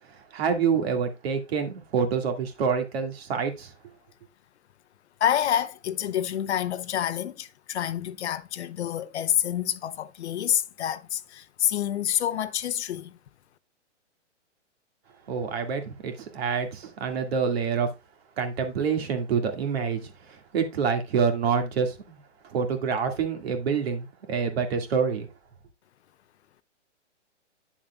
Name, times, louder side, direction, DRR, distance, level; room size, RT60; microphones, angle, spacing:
voice 1, 0.3-3.7 15.3-17.9 18.4-25.3, right 6 dB, 55° right, 2.2 m, -27 dB
voice 2, 5.2-13.2, left 10 dB, 65° left, 0.8 m, -28 dB
9.5 x 7.2 x 2.4 m
hypercardioid pair, 145°, 36 cm